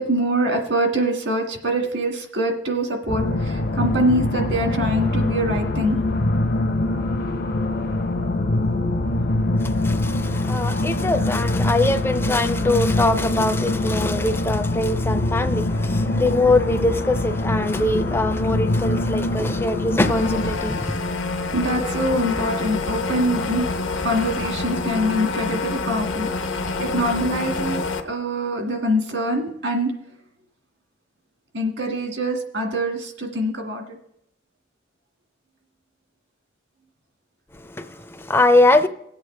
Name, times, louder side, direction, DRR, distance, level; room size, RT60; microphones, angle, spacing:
voice 1, 0.0-6.0 15.8-15.9 16.2-16.4 17.6-17.7 21.5-23.7 24.0-29.9 31.5-34.0, equal, 75° right, 1.9 m, -24 dB
sound 1, 3.1-20.6, left 2 dB, 50° left, 0.6 m, -23 dB
voice 2, 9.6-21.0 37.5-38.9, left 2 dB, 10° left, 0.4 m, -22 dB
sound 2, 20.0-28.0, left 3 dB, 80° left, 0.9 m, -27 dB
19.0 x 8.2 x 3.3 m
head